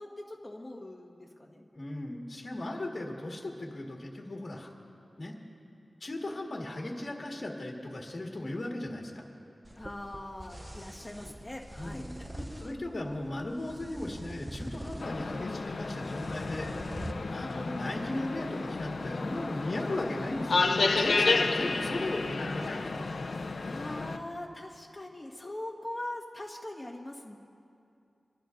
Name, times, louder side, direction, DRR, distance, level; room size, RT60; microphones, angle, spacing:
voice 1, 0.0-1.6 5.7-5.8 9.8-12.0 12.3-12.8 17.3-17.9 23.6-27.4, left 1 dB, 20° left, -2 dB, 1.5 m, -42 dB
voice 2, 1.7-4.7 5.2-5.4 6.0-9.2 11.8-12.1 12.6-16.7 17.3-23.1, left 1 dB, 45° left, 0 dB, 1.7 m, -37 dB
sound 1, 9.6-17.1, right 1 dB, 15° right, 0.7 m, -44 dB
sound 2, 15.0-24.2, left 3 dB, 70° left, 0.6 m, -31 dB
26.5 x 11.5 x 2.6 m, 2.5 s
wide cardioid pair, 65°, 0 cm